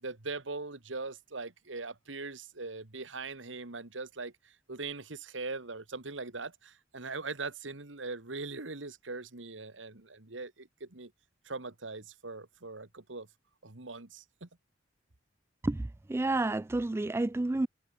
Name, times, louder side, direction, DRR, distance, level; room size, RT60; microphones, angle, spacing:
voice 1, 0.0-11.1 11.4-13.3 13.6-14.5, right 3 dB, 85° right, 2.1 m, -41 dB
voice 2, 15.6-17.7, right 2 dB, 15° right, 0.3 m, -30 dB
head